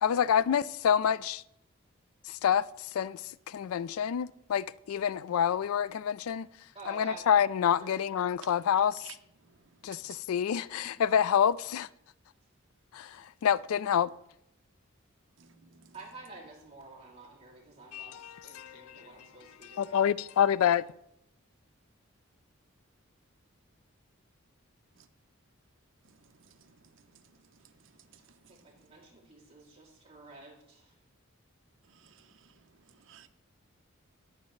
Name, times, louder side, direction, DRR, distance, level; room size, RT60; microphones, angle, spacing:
voice 1, 0.0-1.4 2.2-6.5 6.9-9.2 9.8-11.9 12.9-14.1 17.9-19.1 19.6-20.8, left 8 dB, 85° left, 0.3 m, -28 dB
voice 2, 6.7-7.3 7.8-8.0 15.9-20.0 28.5-30.9, right 3 dB, 25° right, 2.8 m, -50 dB
voice 3, 15.4-15.9 26.6-26.9 28.4-28.6 31.9-32.5 32.9-33.3, right 9 dB, 65° right, 0.8 m, -54 dB
19.5 x 7.4 x 3.1 m
head